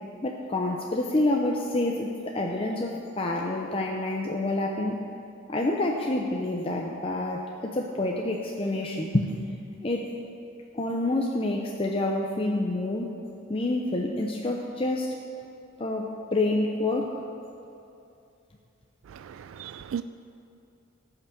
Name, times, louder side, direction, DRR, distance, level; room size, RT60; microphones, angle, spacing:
voice 1, 0.2-5.0 5.5-9.3 9.8-10.1 10.7-13.1 13.5-15.1 15.8-17.2, left 2 dB, 30° left, 0 dB, 0.7 m, -28 dB
voice 2, 19.1-20.0, right 8 dB, 90° right, 11 dB, 0.3 m, -36 dB
15.0 x 5.9 x 6.9 m, 2.6 s
head